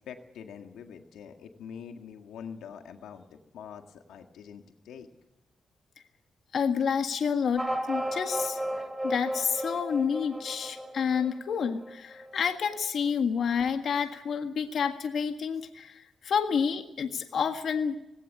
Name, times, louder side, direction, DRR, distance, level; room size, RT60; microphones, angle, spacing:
voice 1, 0.1-5.1, left 7 dB, 90° left, 5 dB, 1.8 m, -45 dB
voice 2, 6.5-7.6 7.9-18.0, left 6 dB, 65° left, 6 dB, 1.7 m, -29 dB
sound 1, 7.6-12.5, right 1 dB, 5° right, 3.7 m, -34 dB
19.0 x 17.0 x 8.8 m, 0.89 s
cardioid pair, 75°, 0 cm